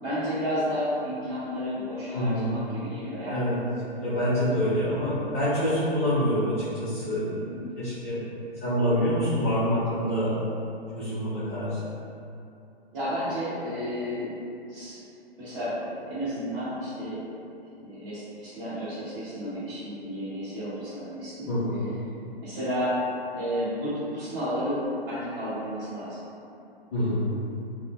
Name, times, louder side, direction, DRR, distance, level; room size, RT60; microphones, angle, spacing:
voice 1, 0.0-3.3 7.3-7.7 12.9-14.3 14.7-15.0 15.4-17.2 17.8-21.5 22.4-22.9 23.3-26.2, equal, 40° right, -15 dB, 0.8 m, -32 dB
voice 2, 2.1-2.5 3.3-3.6 4.0-7.2 7.8-8.2 8.6-10.3 10.9-11.8 21.5-21.9 26.9-27.3, equal, 15° left, -15 dB, 0.4 m, -26 dB
2.1 x 2.0 x 3.4 m, 2.7 s
figure-of-eight pair, 125°, 31 cm